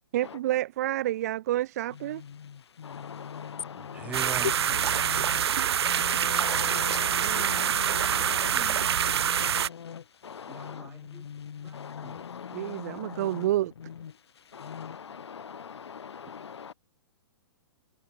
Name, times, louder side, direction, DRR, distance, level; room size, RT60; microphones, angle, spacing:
voice 1, 0.1-2.2 7.2-7.7 12.5-13.7, right 14 dB, 35° right, 0.9 m, -29 dB
sound 1, 1.9-15.0, left 7 dB, 75° left, 6.1 m, -43 dB
voice 2, 2.8-5.4 6.3-8.6 10.2-10.9 11.7-13.5 14.5-16.7, left 7 dB, 90° left, 4.6 m, -41 dB
voice 3, 3.8-4.5 5.0-5.1 8.3-9.5 10.5-11.2 11.6-12.2, right 8 dB, 10° right, 4.7 m, -43 dB
sound 2, 4.1-9.7, right 9 dB, 70° right, 0.8 m, -26 dB
hypercardioid pair, 170°, 14 cm